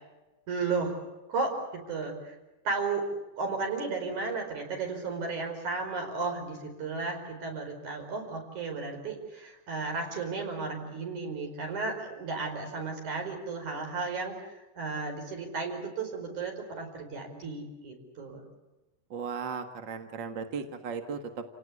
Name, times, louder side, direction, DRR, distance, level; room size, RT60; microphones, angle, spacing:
voice 1, 0.5-1.0 1.3-2.4 2.6-3.0 3.4-14.3 14.8-18.4, right 4 dB, 65° right, 3 dB, 6.3 m, -34 dB
voice 2, 19.1-21.4, right 5 dB, 45° right, 7 dB, 1.8 m, -36 dB
29.5 x 18.0 x 8.5 m, 1.1 s
omnidirectional pair, 3.6 m